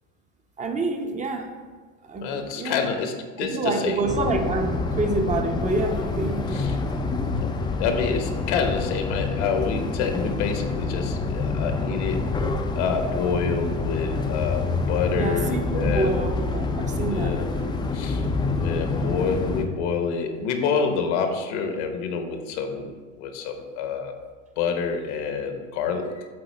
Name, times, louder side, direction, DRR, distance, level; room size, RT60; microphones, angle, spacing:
voice 1, 0.6-1.5 2.0-2.8 3.4-6.6 15.2-17.8, right 3 dB, 20° right, 5 dB, 0.7 m, -27 dB
voice 2, 2.2-4.0 6.5-6.8 7.4-12.3 12.8-16.3 17.1-17.4 17.9-18.2 18.6-24.2 24.6-26.3, left 5 dB, 65° left, 6 dB, 1.1 m, -28 dB
sound 1, 4.1-19.6, left 3 dB, 10° left, 0.4 m, -27 dB
7.8 x 4.1 x 4.1 m, 1.5 s
supercardioid pair, 110°, 37 cm